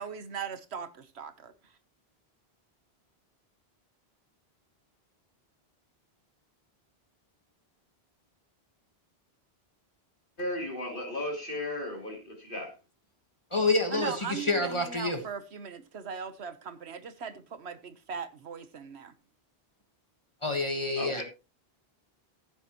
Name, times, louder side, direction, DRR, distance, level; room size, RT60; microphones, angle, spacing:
voice 1, 0.0-1.5 13.9-19.1, right 6 dB, 85° right, 1.3 m, -39 dB
voice 2, 10.4-12.7 21.0-21.2, left 1 dB, 55° left, 3.5 m, -35 dB
voice 3, 13.5-15.2 20.4-21.2, left 2 dB, 30° left, 1.5 m, -28 dB
15.0 x 8.0 x 3.0 m
omnidirectional pair, 1.1 m